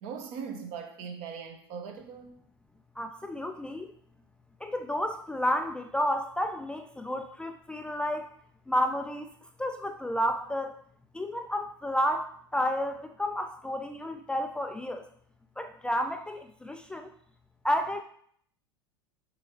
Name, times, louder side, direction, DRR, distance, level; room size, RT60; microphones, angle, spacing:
voice 1, 0.0-2.4, right 6 dB, 50° right, 4 dB, 1.3 m, -40 dB
voice 2, 3.0-3.9 4.6-8.3 8.7-9.3 9.6-10.8 11.1-15.0 15.6-17.1 17.6-18.0, equal, 5° left, 6 dB, 0.4 m, -31 dB
6.8 x 5.5 x 3.2 m, 0.63 s
figure-of-eight pair, 80°, 13 cm